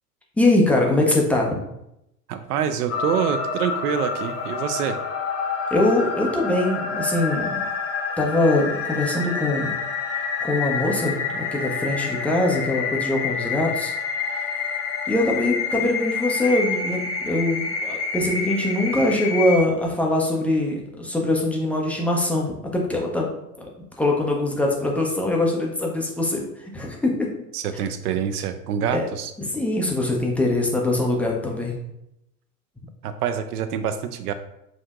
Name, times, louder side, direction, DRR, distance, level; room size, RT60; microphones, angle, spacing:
voice 1, 0.4-1.6 5.7-7.6 8.2-9.7 10.1-13.9 14.3-14.5 15.1-23.3 23.6-23.7 24.0-27.3 27.7-27.8 28.9-29.0 29.4-31.8, left 2 dB, 5° left, -1 dB, 0.4 m, -23 dB
voice 2, 2.3-5.0 27.5-29.3 33.0-34.3, right 8 dB, 70° right, 10 dB, 0.6 m, -26 dB
sound 1, 2.9-19.6, left 5 dB, 30° left, 0.7 m, -28 dB
6.3 x 2.6 x 2.4 m, 0.83 s
hypercardioid pair, 85°, 48 cm